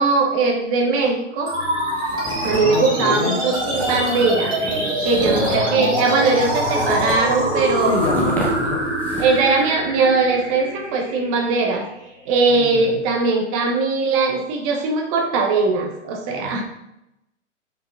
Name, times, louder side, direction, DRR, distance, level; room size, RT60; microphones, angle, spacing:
voice 1, 0.0-1.5 2.4-8.0 9.2-11.9 12.3-16.6, right 3 dB, 25° right, 2 dB, 0.9 m, -20 dB
sound 1, 1.5-12.4, right 1 dB, 10° right, 1.8 m, -24 dB
sound 2, 1.9-2.8 3.1-3.2 3.5-9.5, equal, 5° left, 1.1 m, -31 dB
voice 2, 2.5-3.4 5.3-6.0 7.9-8.8 12.5-13.0 16.4-16.6, left 4 dB, 25° left, 2 dB, 0.8 m, -27 dB
5.7 x 5.0 x 3.6 m, 0.84 s
figure-of-eight pair, 115°, 37 cm